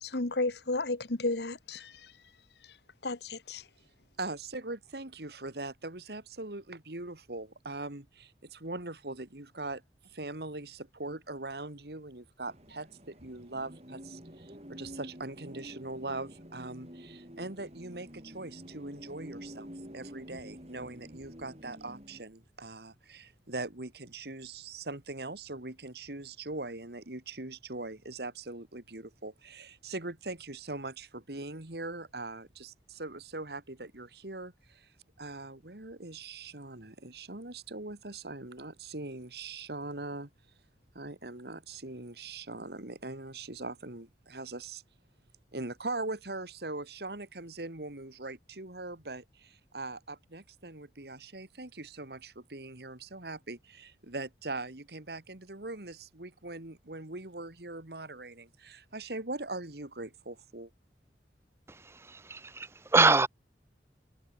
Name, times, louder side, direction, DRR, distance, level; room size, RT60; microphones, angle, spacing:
voice 1, 0.0-2.1 3.0-3.6, left 2 dB, 75° left, 1.6 m, -33 dB
voice 2, 4.2-34.9 35.2-40.3 40.9-44.8 45.5-60.7, right 2 dB, 70° right, 2.3 m, -41 dB
sound 1, 12.5-22.2, equal, 35° right, 7.7 m, -48 dB
voice 3, 61.9-63.3, right 3 dB, 15° right, 0.5 m, -25 dB
head